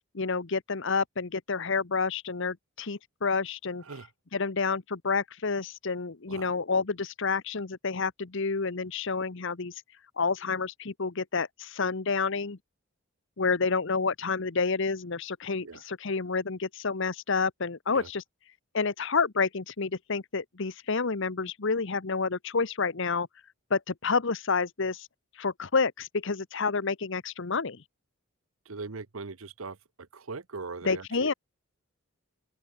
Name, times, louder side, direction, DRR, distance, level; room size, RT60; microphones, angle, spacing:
voice 1, 0.1-3.8 4.3-9.7 10.2-12.6 13.4-18.2 18.7-23.3 23.7-25.1 25.4-27.8 30.8-31.3, left 4 dB, 60° left, 1.0 m, -29 dB
voice 2, 28.7-31.3, right 4 dB, 80° right, 1.0 m, -40 dB
open air
head